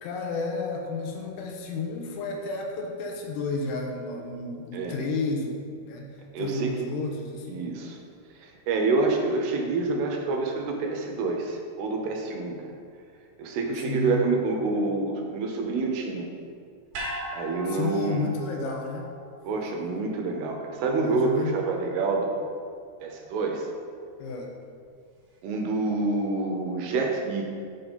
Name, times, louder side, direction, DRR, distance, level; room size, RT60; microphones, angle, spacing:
voice 1, 0.0-7.6 13.9-14.2 17.7-19.1 21.1-21.6 24.2-24.5, left 3 dB, 85° left, 1 dB, 2.8 m, -32 dB
voice 2, 6.3-6.7 7.5-8.0 8.4-12.8 13.4-16.3 17.3-18.3 19.4-22.5 23.0-23.7 25.4-27.5, right 3 dB, 80° right, 2 dB, 2.7 m, -27 dB
sound 1, 16.9-21.3 21.6-21.7, equal, 60° right, 2.4 m, -39 dB
7.7 x 3.7 x 5.3 m, 2.2 s
omnidirectional pair, 4.8 m